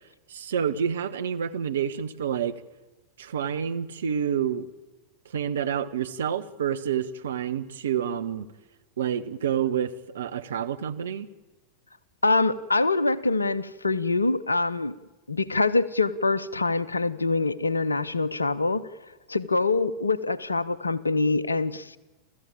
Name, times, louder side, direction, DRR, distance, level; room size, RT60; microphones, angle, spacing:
voice 1, 0.3-2.6 3.2-4.7 5.3-8.5 9.0-11.3, right 8 dB, 65° right, 9 dB, 1.2 m, -28 dB
voice 2, 12.2-14.9 15.3-18.9 19.3-22.0, left 3 dB, 80° left, 20 dB, 0.8 m, -24 dB
29.0 x 14.5 x 8.8 m, 1.1 s
figure-of-eight pair, 90°, 0 cm